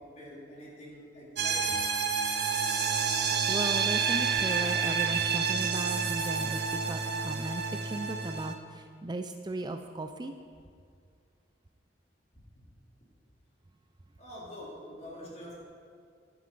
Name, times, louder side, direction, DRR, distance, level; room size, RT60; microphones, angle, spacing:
voice 1, 0.0-1.8 14.2-15.6, left 1 dB, 35° left, -4 dB, 3.1 m, -45 dB
sound 1, 1.4-8.5, right 5 dB, 60° right, 0.9 m, -29 dB
voice 2, 3.5-6.6 6.9-8.5 9.0-10.3, right 2 dB, 25° right, 6 dB, 0.5 m, -36 dB
11.0 x 10.0 x 5.3 m, 2.2 s
head